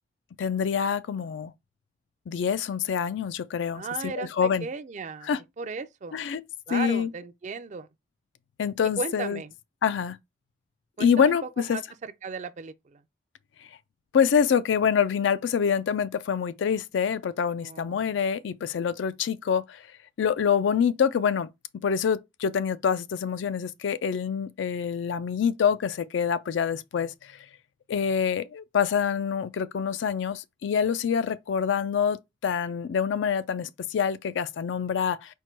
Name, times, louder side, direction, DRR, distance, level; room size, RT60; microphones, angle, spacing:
voice 1, 0.4-1.5 2.3-4.7 5.2-5.4 6.1-6.4 6.7-7.1 8.6-9.4 9.8-10.2 11.0-11.8 14.1-19.8 20.2-21.5 21.8-27.4 27.9-35.3, left 7 dB, 80° left, 0.4 m, -26 dB
voice 2, 3.7-5.3 5.6-6.1 6.7-7.9 9.0-9.5 11.0-11.4 11.6-13.0 17.6-18.2, right 4 dB, 40° right, 0.4 m, -36 dB
4.5 x 2.2 x 4.4 m
head